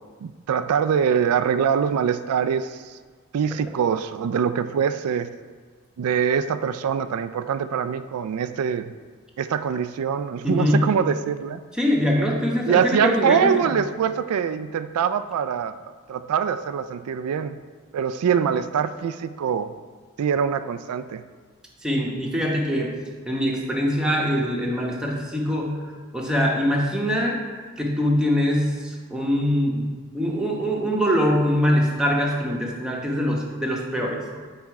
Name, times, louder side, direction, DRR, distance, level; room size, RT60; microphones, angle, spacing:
voice 1, 0.2-2.9 3.3-5.3 6.0-8.9 9.4-11.6 12.7-15.8 16.1-17.6 17.9-19.7 20.2-21.2, right 7 dB, 85° right, 11 dB, 0.3 m, -24 dB
voice 2, 10.4-11.0 11.7-13.8 21.8-22.9 23.3-25.8 26.1-27.4 27.8-34.4, equal, 5° right, -2 dB, 1.0 m, -23 dB
9.3 x 4.3 x 4.7 m, 1.5 s
head